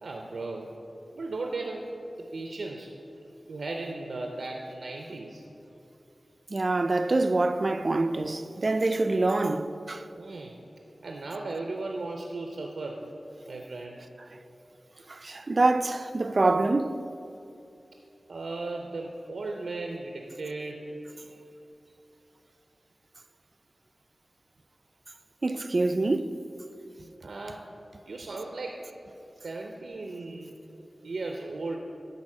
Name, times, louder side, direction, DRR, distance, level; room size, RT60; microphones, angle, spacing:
voice 1, 0.0-0.7 1.1-1.8 2.2-2.9 3.5-5.4 10.1-10.6 11.0-13.0 13.5-14.0 18.3-20.8 27.2-27.7 28.1-28.8 29.4-30.5 31.0-31.8, right 3 dB, 90° right, 0.6 m, -36 dB
voice 2, 6.5-10.1 15.1-17.0 25.4-26.4, right 2 dB, 50° right, 0.4 m, -25 dB
11.0 x 4.1 x 7.3 m
wide cardioid pair, 75°, 0 cm